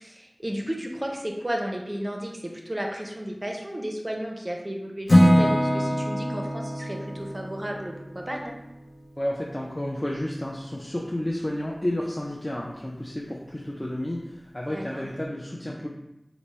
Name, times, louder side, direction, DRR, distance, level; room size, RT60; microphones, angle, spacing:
voice 1, 0.0-8.5 14.7-15.0, equal, 35° right, 1 dB, 0.5 m, -33 dB
Acoustic guitar / Strum, 5.1-9.1, equal, 80° left, 0.7 m, -23 dB
voice 2, 9.2-15.9, left 1 dB, 30° left, -2 dB, 0.4 m, -31 dB
3.3 x 2.0 x 4.0 m, 0.90 s
wide cardioid pair, 50°, 0 cm